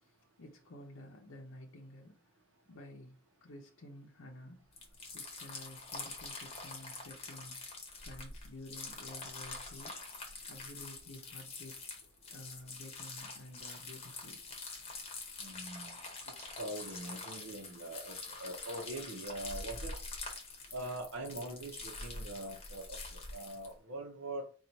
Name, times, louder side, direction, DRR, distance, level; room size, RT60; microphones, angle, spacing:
voice 1, 0.0-2.2 2.7-3.1 3.4-4.6 5.1-7.6 8.0-10.0 10.5-11.8 12.3-14.4, left 1 dB, 70° left, 0.6 m, -51 dB
sound 1, 4.7-23.7, left 3 dB, 30° left, 0.9 m, -45 dB
voice 2, 15.4-16.0 16.4-19.9 20.7-24.4, right 1 dB, 85° right, 0.8 m, -43 dB
4.4 x 2.4 x 4.0 m
head